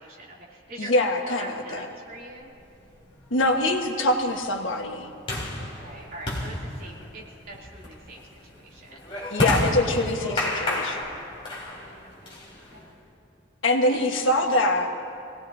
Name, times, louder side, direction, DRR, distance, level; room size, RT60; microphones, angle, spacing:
voice 1, 0.0-2.5 5.6-9.0 11.6-12.3 12.7-12.8 13.9-14.5, right 1 dB, 50° right, -5 dB, 3.0 m, -43 dB
voice 2, 0.8-1.8 3.3-5.1 9.3-11.0 13.6-14.9, left 1 dB, 90° left, 2 dB, 1.4 m, -24 dB
sound 1, 2.6-13.0, left 1 dB, 30° left, 3.4 m, -32 dB
25.5 x 18.5 x 2.8 m, 2.5 s
head